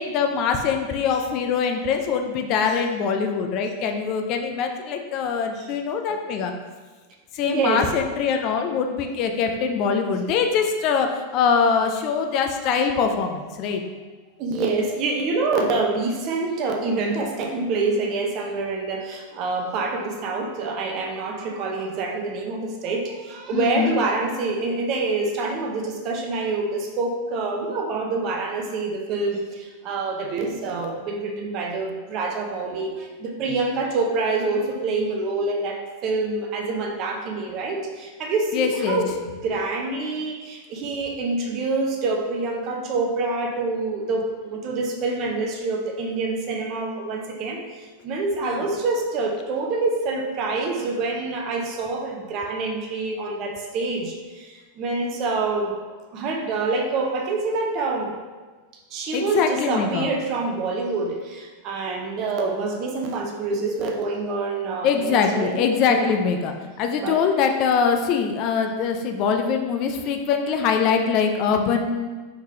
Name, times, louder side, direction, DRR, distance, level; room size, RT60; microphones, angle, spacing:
voice 1, 0.0-6.5 7.3-13.8 23.5-24.0 38.5-39.0 48.4-48.6 59.1-60.1 64.8-72.1, left 6 dB, 40° left, 4 dB, 0.4 m, -23 dB
voice 2, 7.4-7.8 14.4-47.6 48.0-58.1 58.9-65.5 65.9-66.1 67.0-67.2, right 3 dB, 40° right, 2 dB, 0.7 m, -26 dB
4.7 x 3.6 x 2.8 m, 1.3 s
figure-of-eight pair, 90°, 0 cm